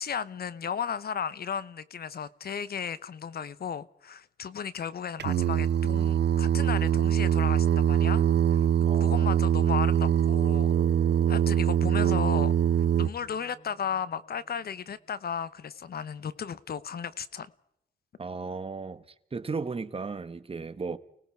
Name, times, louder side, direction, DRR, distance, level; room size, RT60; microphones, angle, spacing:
voice 1, 0.0-8.2 8.5-8.7 9.0-10.7 11.3-12.5 13.0-17.5, left 7 dB, 55° left, 0.9 m, -35 dB
Singing, 5.2-13.1, right 9 dB, 70° right, 0.7 m, -23 dB
voice 2, 8.8-9.4 18.2-19.0 19.3-21.0, right 4 dB, 30° right, 1.3 m, -35 dB
sound 1, 10.7-15.0, right 4 dB, 45° right, 1.8 m, -48 dB
30.0 x 18.5 x 4.7 m
cardioid pair, 85°, 18 cm